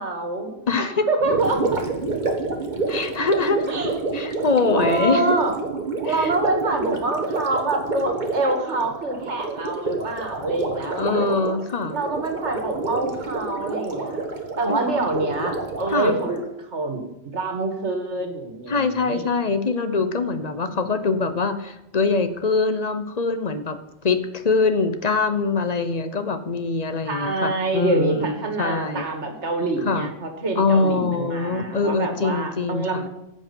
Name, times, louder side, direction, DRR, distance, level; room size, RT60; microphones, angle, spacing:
voice 1, 0.0-0.5 0.8-1.8 3.7-4.0 4.8-5.6 6.0-11.6 11.9-14.2 14.6-17.0 17.3-19.3 27.0-33.1, right 2 dB, 85° right, 4 dB, 2.1 m, -26 dB
voice 2, 0.7-1.1 2.9-3.7 4.1-5.4 6.0-6.3 11.0-12.0 14.7-14.8 15.9-16.1 18.7-29.1 29.8-30.1 30.5-33.1, left 4 dB, 40° left, 10 dB, 0.9 m, -23 dB
Gurgling, 1.2-16.5, right 3 dB, 45° right, 1.6 m, -28 dB
14.5 x 5.3 x 7.0 m, 0.90 s
omnidirectional pair, 1.1 m